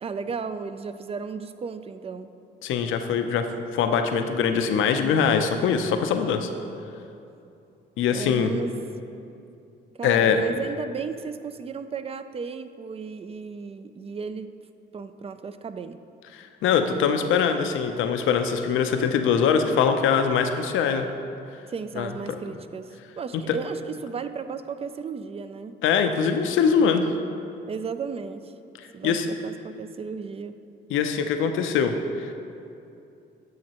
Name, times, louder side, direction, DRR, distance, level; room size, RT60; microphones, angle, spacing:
voice 1, 0.0-2.3 8.1-8.7 9.9-14.5 14.9-16.0 17.2-17.3 21.7-25.8 27.7-28.5 28.9-30.6, right 5 dB, 30° right, 11 dB, 0.3 m, -34 dB
voice 2, 2.6-6.5 8.0-8.5 10.0-10.4 16.3-21.1 22.0-22.1 23.5-23.6 25.8-27.1 28.8-29.3 30.9-32.3, left 6 dB, 85° left, 6 dB, 0.6 m, -23 dB
9.2 x 6.5 x 2.9 m, 2.7 s
cardioid pair, 90°, 20 cm